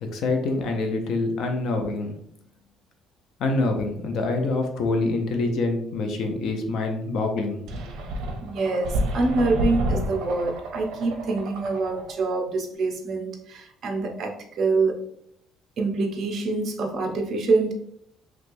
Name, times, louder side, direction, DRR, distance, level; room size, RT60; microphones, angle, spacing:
voice 1, 0.0-2.1 3.4-7.6, left 3 dB, 60° left, 4 dB, 0.5 m, -26 dB
sound 1, 7.7-12.2, right 1 dB, 85° right, 0.5 m, -30 dB
voice 2, 8.4-15.0 15.8-17.7, right 3 dB, 45° right, 2 dB, 0.6 m, -25 dB
3.1 x 3.1 x 2.6 m, 0.70 s
cardioid pair, 155°, 0 cm